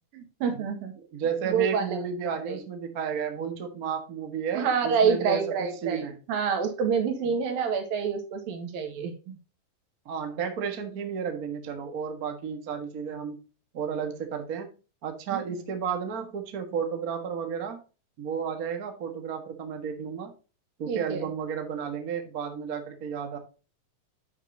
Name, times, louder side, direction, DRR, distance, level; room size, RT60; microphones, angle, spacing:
voice 1, 0.1-0.9 1.5-2.0 2.5-2.6 4.6-9.4 20.9-21.2, right 6 dB, 80° right, 3.4 m, -27 dB
voice 2, 1.0-6.2 7.3-7.4 10.0-13.4 13.7-14.7 15.0-17.8 18.2-20.3 20.8-23.4, right 7 dB, 65° right, 0.8 m, -32 dB
10.0 x 6.4 x 2.7 m
omnidirectional pair, 4.1 m